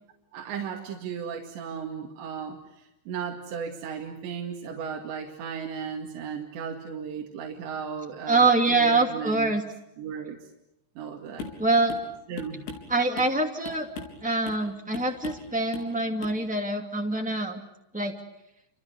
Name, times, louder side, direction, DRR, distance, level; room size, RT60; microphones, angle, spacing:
voice 1, 0.3-9.5 10.0-10.4 11.0-11.5 12.3-12.6, right 7 dB, 70° right, 0 dB, 4.4 m, -36 dB
voice 2, 8.3-9.6 11.6-11.9 12.9-13.9 14.2-17.6 17.9-18.1, right 3 dB, 10° right, 1 dB, 0.3 m, -24 dB
sound 1, 11.4-11.6 11.9-12.1 12.4-13.4 13.7-14.2 14.5-14.7 14.9-15.5 15.7-15.9 16.2-16.4, left 5 dB, 70° left, 6.1 m, -39 dB
29.5 x 27.5 x 6.6 m, 0.88 s
omnidirectional pair, 5.4 m